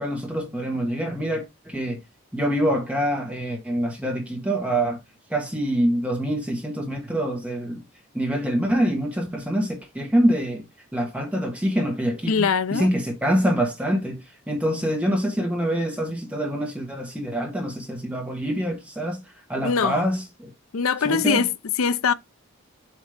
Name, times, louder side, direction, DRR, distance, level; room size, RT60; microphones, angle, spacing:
voice 1, 0.0-2.0 2.3-5.0 5.3-7.8 8.1-10.6 10.9-19.2 19.5-20.5 21.0-21.4, right 1 dB, 5° right, 1.5 m, -25 dB
voice 2, 12.3-12.9 19.6-20.1 20.7-22.1, left 6 dB, 85° left, 0.6 m, -22 dB
7.4 x 3.1 x 5.0 m
head